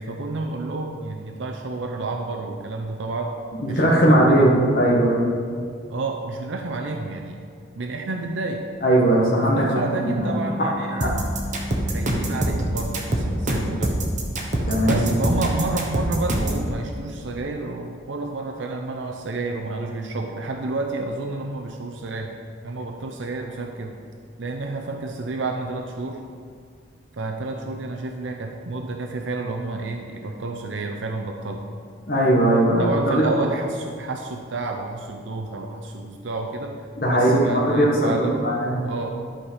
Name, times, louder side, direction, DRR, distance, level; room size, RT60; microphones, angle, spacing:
voice 1, 0.0-3.3 3.7-4.5 5.9-7.4 7.7-8.6 9.3-11.2 11.9-14.0 14.9-22.3 22.6-23.9 24.4-26.2 27.1-31.7 32.8-36.8 37.1-38.5 38.8-39.1, right 3 dB, 75° right, 2 dB, 0.6 m, -30 dB
voice 2, 3.6-5.4 8.8-10.1 10.6-11.1 14.7-15.0 32.1-33.2 37.0-38.8, right 1 dB, 45° left, -6 dB, 1.5 m, -19 dB
Bass guitar, 10.2-16.4, left 2 dB, 5° left, 0.6 m, -37 dB
sound 1, 11.0-16.6, right 1 dB, 40° right, 1.1 m, -24 dB
11.5 x 5.0 x 5.6 m, 2.2 s
head